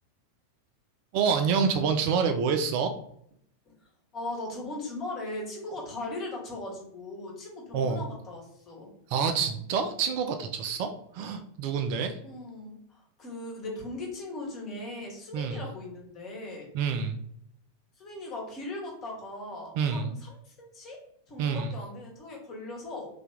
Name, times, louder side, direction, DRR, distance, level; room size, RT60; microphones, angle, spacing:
voice 1, 1.1-2.9 7.7-8.0 9.1-12.2 15.3-15.6 16.7-17.2 19.8-20.1 21.4-21.7, right 6 dB, 45° right, 7 dB, 0.4 m, -27 dB
voice 2, 4.1-8.9 11.7-11.8 12.2-16.7 18.0-21.0 21.3-23.2, left 2 dB, 30° left, -1 dB, 1.4 m, -39 dB
3.3 x 2.9 x 3.5 m, 0.70 s
figure-of-eight pair, 90°, 0 cm